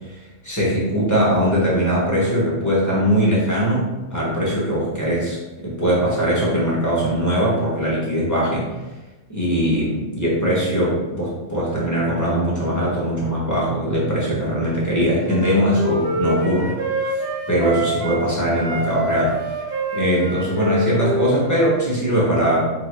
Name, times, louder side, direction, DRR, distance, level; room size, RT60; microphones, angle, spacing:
voice 1, 0.1-8.7 9.3-17.1 17.5-19.5 19.9-22.7, equal, 20° left, -7 dB, 0.6 m, -21 dB
Wind instrument woodwind instrument, 15.3-18.2 18.5-21.9, right 1 dB, 55° right, 0.7 m, -26 dB
2.9 x 2.7 x 3.1 m, 1.2 s
omnidirectional pair, 1.3 m